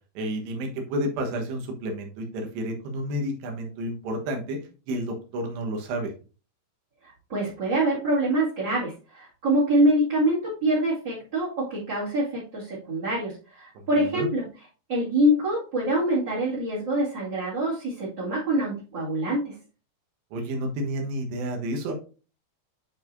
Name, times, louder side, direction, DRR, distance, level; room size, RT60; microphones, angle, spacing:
voice 1, 0.2-4.6 4.9-6.1 13.8-13.9 14.1-14.3 20.3-21.9, right 1 dB, 85° right, 2 dB, 3.5 m, -30 dB
voice 2, 7.0-14.5 14.9-19.5, right 1 dB, 35° right, -5 dB, 2.4 m, -25 dB
10.0 x 4.7 x 2.7 m, 0.35 s
omnidirectional pair, 4.8 m